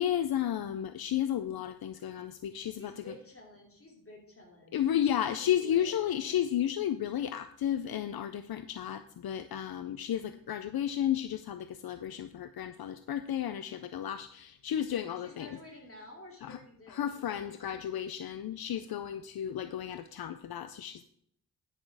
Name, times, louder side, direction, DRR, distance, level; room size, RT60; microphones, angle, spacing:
voice 1, 0.0-2.9 4.7-15.6 16.4-16.6 16.9-21.0, left 10 dB, 75° left, 11 dB, 0.5 m, -33 dB
voice 2, 2.7-6.2 15.2-17.8, left 1 dB, 35° left, 0 dB, 2.7 m, -51 dB
10.0 x 6.4 x 4.7 m, 0.69 s
wide cardioid pair, 115°, 37 cm